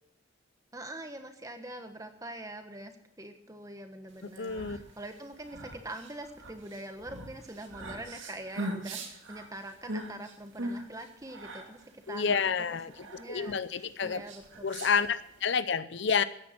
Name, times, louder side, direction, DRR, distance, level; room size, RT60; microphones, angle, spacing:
voice 1, 0.7-2.9 3.2-12.5 13.2-15.1, right 1 dB, 15° right, 7 dB, 1.3 m, -44 dB
sound 1, 4.2-15.4, right 1 dB, 65° right, 2.4 m, -42 dB
voice 2, 4.4-4.8 12.1-12.9 13.3-14.2 14.6-16.2, left 6 dB, 55° left, 15 dB, 0.5 m, -29 dB
15.0 x 10.5 x 5.9 m, 0.78 s
head